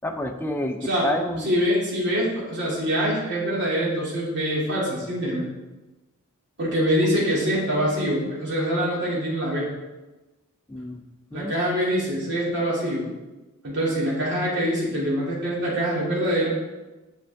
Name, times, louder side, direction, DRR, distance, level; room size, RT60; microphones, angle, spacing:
voice 1, 0.0-1.5 10.7-11.0 11.3-11.5, left 1 dB, 10° left, 5 dB, 0.5 m, -28 dB
voice 2, 1.4-5.4 6.6-9.7 11.3-13.1 13.6-16.5, equal, 55° right, -6 dB, 2.5 m, -24 dB
7.7 x 5.7 x 3.5 m, 1.1 s
head